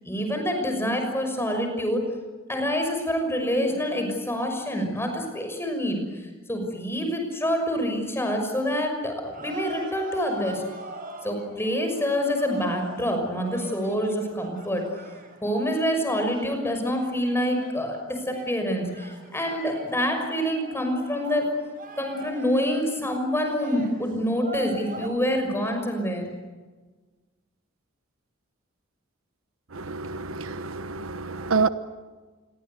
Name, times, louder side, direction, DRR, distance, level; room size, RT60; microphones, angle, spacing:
voice 1, 0.0-2.1 2.5-10.6 11.2-14.8 15.4-21.5 22.0-26.2, equal, 10° left, 6.1 m, -26 dB
sound 1, 9.3-25.1, right 2 dB, 45° right, 5.0 m, -42 dB
voice 2, 29.7-31.7, right 4 dB, 80° right, 1.2 m, -27 dB
27.5 x 23.0 x 8.2 m
head